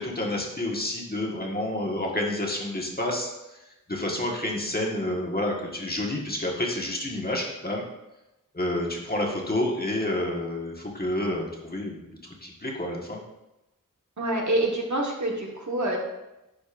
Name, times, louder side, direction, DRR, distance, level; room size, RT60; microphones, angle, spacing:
voice 1, 0.0-3.6 3.9-7.8 8.5-12.1 12.4-13.2, left 1 dB, 30° left, -1 dB, 1.5 m, -29 dB
voice 2, 14.2-16.0, right 1 dB, 60° right, -1 dB, 1.4 m, -26 dB
10.0 x 5.2 x 2.5 m, 0.95 s
wide cardioid pair, 50°, 33 cm